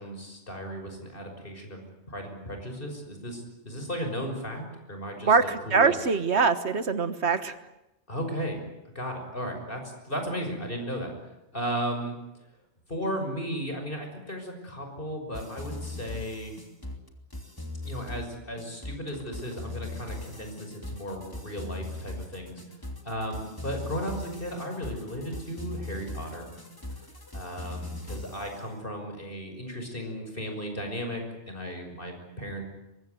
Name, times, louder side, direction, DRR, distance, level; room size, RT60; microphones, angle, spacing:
voice 1, 0.0-1.8 2.1-5.9 8.1-8.6 8.9-11.1 11.5-12.1 12.9-16.5 17.8-22.6 23.0-26.5 27.3-32.6, equal, 50° left, 4 dB, 6.2 m, -35 dB
voice 2, 5.2-7.6, right 5 dB, 70° right, 12 dB, 1.6 m, -23 dB
sound 1, 15.3-28.6, left 2 dB, 20° left, 2.9 m, -39 dB
24.0 x 21.5 x 9.4 m, 0.91 s
omnidirectional pair, 1.2 m